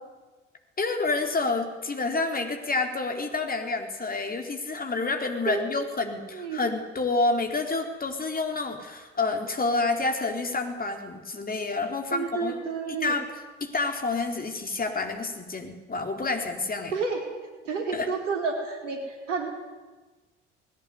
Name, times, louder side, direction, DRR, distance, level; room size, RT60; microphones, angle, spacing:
voice 1, 0.8-12.6 12.9-16.9 17.9-18.1, left 3 dB, 25° left, 5 dB, 4.0 m, -28 dB
voice 2, 5.5-6.6 12.1-13.1 16.9-17.2 17.6-19.5, right 4 dB, 80° right, 3 dB, 4.2 m, -31 dB
20.5 x 18.0 x 9.8 m, 1.2 s
figure-of-eight pair, 55°, 36 cm